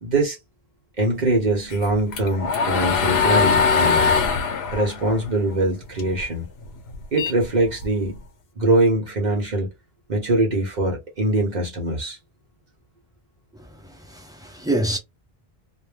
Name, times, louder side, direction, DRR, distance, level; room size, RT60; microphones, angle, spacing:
voice 1, 0.0-0.4 1.0-4.1 4.7-6.5 7.1-8.2 8.6-9.7 10.1-12.2, right 2 dB, 50° right, 0.7 m, -22 dB
sound 1, 1.7-6.2 6.6-8.2, left 5 dB, 90° left, 0.9 m, -21 dB
voice 2, 13.5-15.0, right 1 dB, 5° right, 0.4 m, -27 dB
2.2 x 2.1 x 3.2 m
omnidirectional pair, 1.1 m